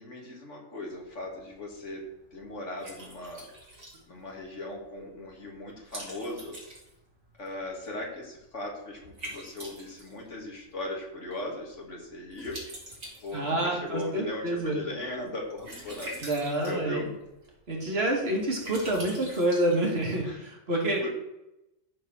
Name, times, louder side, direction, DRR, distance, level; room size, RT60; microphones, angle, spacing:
voice 1, 0.0-2.0 2.3-3.5 4.1-6.6 7.4-12.6 13.2-16.1 16.6-17.1 19.1-19.4 20.2-20.4 21.0-21.1, left 1 dB, 65° left, -1 dB, 2.7 m, -38 dB
Liquid, 0.9-20.3, right 1 dB, 80° right, 3.2 m, -47 dB
voice 2, 13.3-14.8 16.2-17.0 17.7-21.1, right 1 dB, 50° right, -1 dB, 2.7 m, -28 dB
13.5 x 4.7 x 6.4 m, 0.89 s
omnidirectional pair, 1.4 m